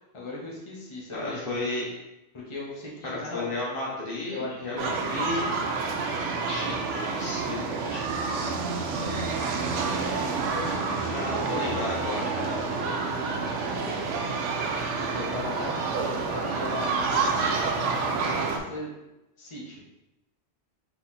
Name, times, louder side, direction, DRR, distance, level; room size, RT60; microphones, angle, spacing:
voice 1, 0.0-1.4 2.3-3.5 4.3-4.8 9.9-11.8 12.3-14.1 15.0-18.9 19.4-19.8, left 2 dB, 25° left, -5 dB, 1.0 m, -38 dB
voice 2, 1.1-1.9 3.0-5.5 6.5-8.0 8.4-9.3 11.1-12.3, left 2 dB, 55° left, -5 dB, 1.0 m, -33 dB
sound 1, 4.8-18.6, right 4 dB, 90° right, 0.9 m, -28 dB
4.1 x 2.9 x 3.9 m, 0.96 s
omnidirectional pair, 1.2 m